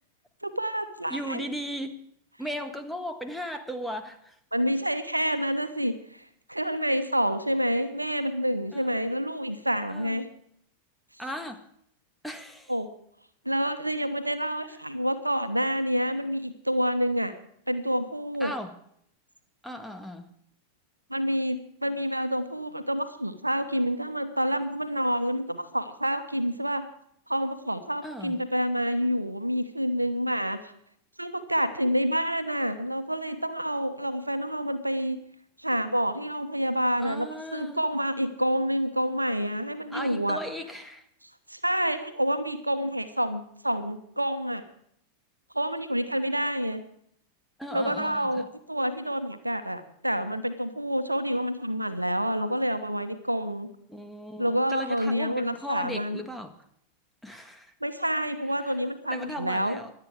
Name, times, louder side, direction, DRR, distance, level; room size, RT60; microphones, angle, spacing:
voice 1, 0.4-1.4 4.5-10.3 12.7-12.9 13.4-17.3 17.7-18.5 21.1-26.8 27.3-30.7 31.2-35.2 35.6-40.4 41.5-44.6 45.5-46.8 47.7-53.7 54.4-56.2 57.8-59.8, equal, 85° right, 11 dB, 1.1 m, -28 dB
voice 2, 1.1-2.0 2.4-4.4 8.7-9.0 9.9-10.2 11.2-11.7 12.2-12.7 18.4-18.7 19.6-20.3 28.0-28.4 37.0-37.8 39.9-41.1 47.6-48.5 53.9-56.5 57.2-57.7 58.6-58.8 59.1-59.9, equal, ahead, 6 dB, 1.7 m, -37 dB
24.0 x 8.9 x 4.8 m, 0.69 s
figure-of-eight pair, 90°, 0 cm